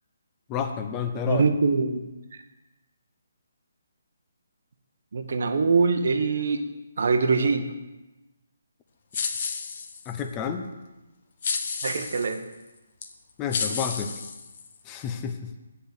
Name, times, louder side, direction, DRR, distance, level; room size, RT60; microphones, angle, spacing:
voice 1, 0.5-1.4 10.1-10.7 13.4-14.1 14.9-15.5, left 7 dB, 20° left, 6 dB, 0.7 m, -30 dB
voice 2, 1.3-2.0 2.3-2.4 5.1-6.6 7.0-7.7 11.8-12.4, right 4 dB, 60° right, 8 dB, 0.9 m, -23 dB
sound 1, 9.1-10.2 11.4-12.4 13.0-13.1 13.5-14.9, left 5 dB, 50° left, 1.0 m, -31 dB
8.3 x 5.1 x 6.6 m, 1.1 s
hypercardioid pair, 160°, 0 cm